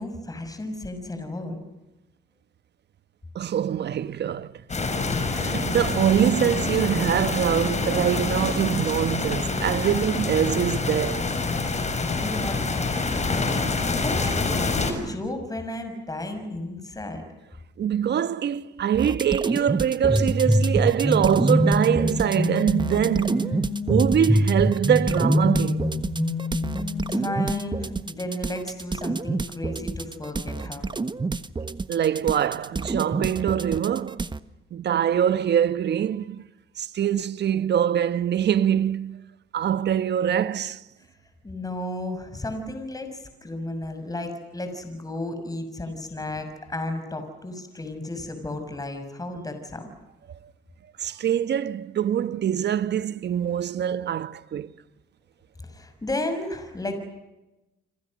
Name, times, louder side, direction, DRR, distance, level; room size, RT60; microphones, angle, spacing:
voice 1, 0.0-1.6 12.0-17.2 27.1-30.9 41.4-49.8 55.6-57.0, left 1 dB, 20° left, 6.2 m, -33 dB
voice 2, 3.3-4.6 5.3-11.3 17.8-23.5 23.9-25.9 31.9-34.3 34.7-36.4 36.8-39.2 39.5-40.8 51.0-54.7, right 9 dB, 60° right, 1.3 m, -24 dB
sound 1, 4.7-14.9, left 3 dB, 35° left, 6.5 m, -26 dB
sound 2, 19.0-34.4, right 3 dB, 25° right, 1.3 m, -29 dB
sound 3, 20.1-27.7, left 1 dB, ahead, 4.3 m, -25 dB
29.0 x 27.0 x 6.5 m
cardioid pair, 90°, 20 cm